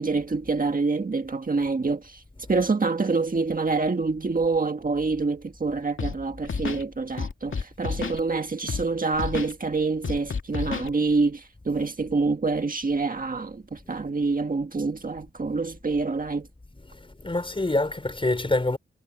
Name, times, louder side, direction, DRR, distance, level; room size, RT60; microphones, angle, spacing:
voice 1, 0.0-2.2 2.5-16.5, right 3 dB, 45° right, 1.6 m, -26 dB
Scratching (performance technique), 6.0-6.2 6.4-6.8 7.2-8.2 8.7-8.8 9.1-9.5 10.0-10.9, left 5 dB, 75° left, 2.3 m, -30 dB
voice 2, 16.9-18.8, left 2 dB, 25° left, 4.7 m, -26 dB
wide cardioid pair, 120°, 21 cm